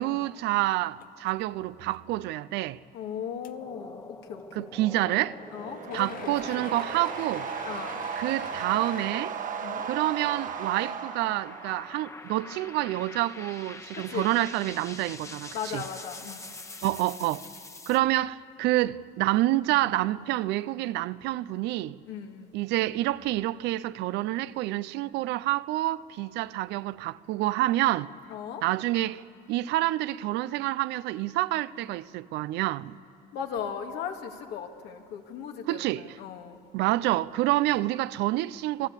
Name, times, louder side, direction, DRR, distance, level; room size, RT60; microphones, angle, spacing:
voice 1, 0.0-2.8 4.6-5.4 5.9-7.5 8.2-9.4 9.9-15.8 16.8-17.4 17.9-22.0 22.5-28.1 28.6-29.2 29.5-33.0 35.7-36.1 36.7-38.9, right 16 dB, 90° right, 0.6 m, -28 dB
sound 1, 1.0-1.4 1.9-2.0 2.6-2.7 3.4-3.5 5.9-9.1, left 11 dB, 60° left, 0.7 m, -44 dB
voice 2, 2.9-4.7 5.5-6.8 7.6-8.0 9.6-9.9 13.9-14.3 15.5-16.4 22.0-22.5 28.3-28.6 33.3-36.6, left 7 dB, 85° left, 2.2 m, -37 dB
sound 2, 3.4-18.0, left 3 dB, 15° left, 1.1 m, -45 dB
sound 3, 5.1-12.2, right 7 dB, 50° right, 1.2 m, -36 dB
28.0 x 20.5 x 8.3 m
cardioid pair, 110°, 17 cm